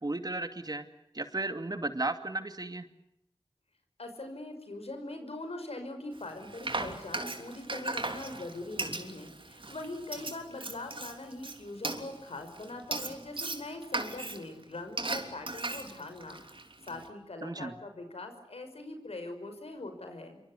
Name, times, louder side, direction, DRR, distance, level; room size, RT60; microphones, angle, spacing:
voice 1, 0.0-0.9 1.1-2.9 17.4-17.7, right 2 dB, 40° right, 9 dB, 2.5 m, -34 dB
voice 2, 4.0-16.4 16.9-20.4, left 2 dB, 90° left, 6 dB, 5.8 m, -42 dB
Frying (food), 6.2-17.1, right 2 dB, 55° right, 3.3 m, -38 dB
27.0 x 24.5 x 8.1 m, 0.80 s
wide cardioid pair, 50°, 10 cm